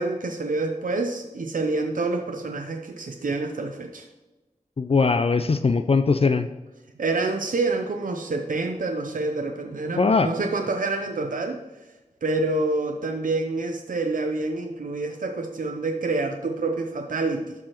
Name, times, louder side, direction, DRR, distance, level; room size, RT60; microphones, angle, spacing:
voice 1, 0.0-4.1 7.0-11.6 12.2-17.5, right 3 dB, 85° right, 4 dB, 0.6 m, -27 dB
voice 2, 4.8-6.5 10.0-10.3, left 4 dB, 45° left, 10 dB, 0.4 m, -20 dB
12.0 x 4.7 x 3.0 m, 1.1 s
wide cardioid pair, 45°, 14 cm